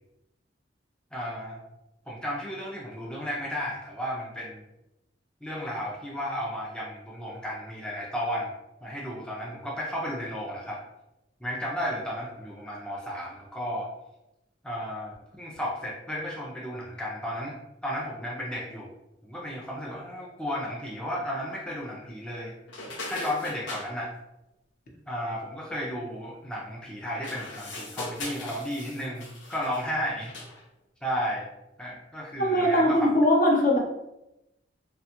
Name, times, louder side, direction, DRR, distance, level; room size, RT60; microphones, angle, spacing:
voice 1, 1.1-1.6 2.1-4.6 5.4-8.5 8.8-10.8 11.4-13.9 14.6-17.6 17.8-18.9 19.2-22.5 23.1-24.1 25.1-30.3 31.0-31.5 31.8-33.1, equal, 5° left, -4 dB, 0.4 m, -33 dB
sound 1, 22.7-23.9 27.1-29.9 30.3-30.6, left 2 dB, 85° left, 0.7 m, -39 dB
voice 2, 32.4-33.8, equal, 50° left, -1 dB, 0.7 m, -21 dB
2.8 x 2.2 x 2.8 m, 0.90 s
head